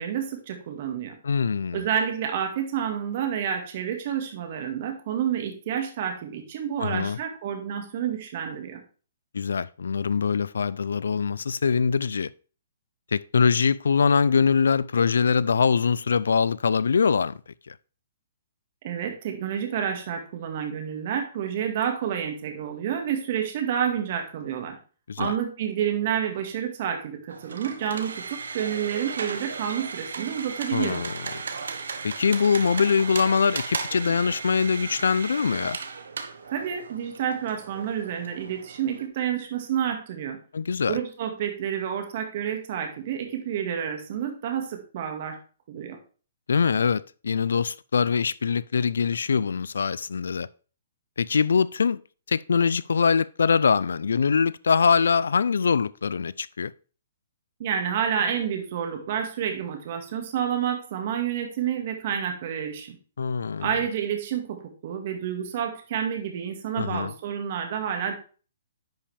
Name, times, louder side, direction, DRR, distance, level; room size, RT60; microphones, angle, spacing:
voice 1, 0.0-1.2 1.7-8.8 18.8-24.8 25.2-31.0 36.5-40.4 40.9-45.4 45.7-46.0 57.6-63.0 63.6-68.1, right 8 dB, 45° right, 2.0 m, -29 dB
voice 2, 1.2-1.8 6.8-7.2 9.3-12.3 13.1-17.4 17.7-17.8 25.1-25.3 30.7-31.1 32.0-35.8 40.5-41.0 46.5-50.5 51.2-52.0 52.3-56.7 63.2-63.7 66.8-67.1, left 5 dB, 90° left, 0.4 m, -23 dB
sound 1, 27.3-39.1, right 5 dB, 90° right, 1.1 m, -36 dB
10.0 x 5.6 x 3.4 m
hypercardioid pair, 160°, 0 cm